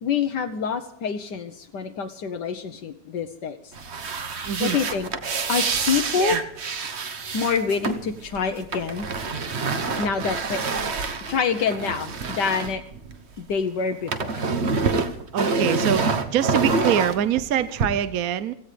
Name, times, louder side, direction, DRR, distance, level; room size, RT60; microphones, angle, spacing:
voice 1, 0.0-3.7 4.6-5.1 5.5-6.4 7.3-9.1 10.0-10.6 11.3-12.8 13.4-14.5, left 6 dB, 75° left, 6 dB, 1.5 m, -26 dB
sound 1, 3.7-13.5 13.8-17.9, right 4 dB, 40° right, 1.3 m, -27 dB
voice 2, 4.4-4.8 6.2-6.4 15.3-18.5, right 10 dB, 60° right, 14 dB, 1.1 m, -24 dB
17.0 x 15.5 x 5.0 m, 0.75 s
omnidirectional pair, 1.9 m